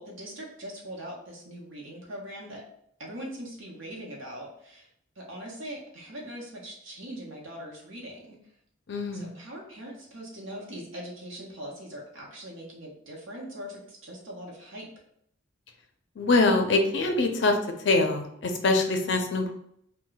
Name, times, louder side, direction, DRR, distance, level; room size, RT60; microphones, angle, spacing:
voice 1, 0.0-2.6 3.0-4.9 5.2-8.4 9.1-14.9, equal, 75° right, -2 dB, 0.9 m, -41 dB
voice 2, 8.9-9.3 16.2-19.5, left 3 dB, 60° left, 5 dB, 0.4 m, -24 dB
2.2 x 2.2 x 3.8 m, 0.72 s
head